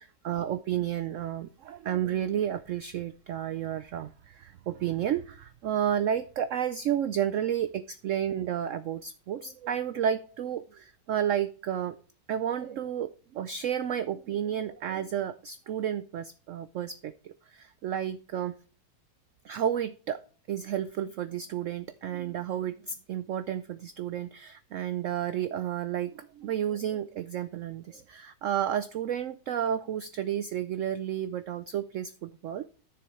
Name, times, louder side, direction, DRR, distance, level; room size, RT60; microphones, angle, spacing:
voice 1, 0.0-12.0 12.3-18.5 19.4-20.2 20.5-32.7, right 10 dB, 75° right, 13 dB, 0.7 m, -31 dB
12.5 x 7.0 x 3.2 m, 0.40 s
omnidirectional pair, 1.9 m